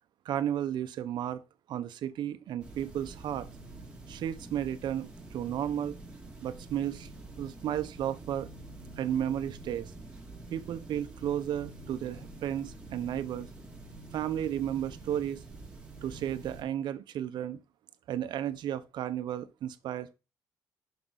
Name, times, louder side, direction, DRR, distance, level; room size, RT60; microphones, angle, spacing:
voice 1, 0.2-1.4 1.7-3.5 4.1-6.0 6.4-7.1 7.4-8.5 9.0-9.9 10.5-13.5 14.1-15.4 16.0-17.6 18.1-20.1, right 10 dB, 70° right, 0.9 m, -33 dB
sound 1, 2.6-16.6, right 2 dB, 15° right, 2.1 m, -47 dB
6.1 x 6.0 x 3.9 m
cardioid pair, 85°, 8 cm